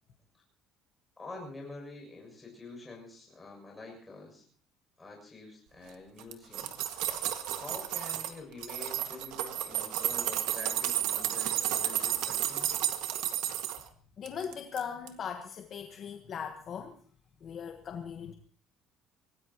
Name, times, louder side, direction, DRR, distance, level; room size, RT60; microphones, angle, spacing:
voice 1, 1.2-4.5 5.0-6.9 7.5-12.7, left 3 dB, 10° left, 0 dB, 6.9 m, -47 dB
sound 1, 6.2-8.3 8.6-13.8 14.3-14.8 15.1-15.2, right 12 dB, 80° right, 1.8 m, -32 dB
voice 2, 14.2-17.0 17.4-18.3, left 7 dB, 35° left, 5 dB, 1.2 m, -39 dB
26.0 x 18.5 x 3.0 m, 0.41 s
cardioid pair, 160°, 0 cm